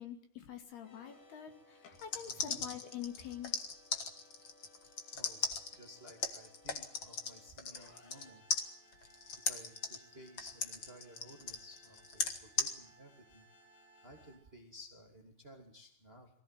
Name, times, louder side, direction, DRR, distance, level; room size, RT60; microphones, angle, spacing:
voice 1, 0.0-3.5, left 9 dB, 65° left, 7 dB, 4.3 m, -46 dB
sound 1, 0.7-14.3, equal, 85° left, 10.0 m, -63 dB
sound 2, 1.9-8.2 8.5-12.7, left 5 dB, 45° left, 1.7 m, -37 dB
voice 2, 2.2-2.7 5.1-5.4 5.7-8.4 9.5-13.5 14.0-16.3, equal, 15° right, 3 dB, 2.4 m, -56 dB
23.5 x 16.0 x 9.2 m, 0.62 s
omnidirectional pair, 4.9 m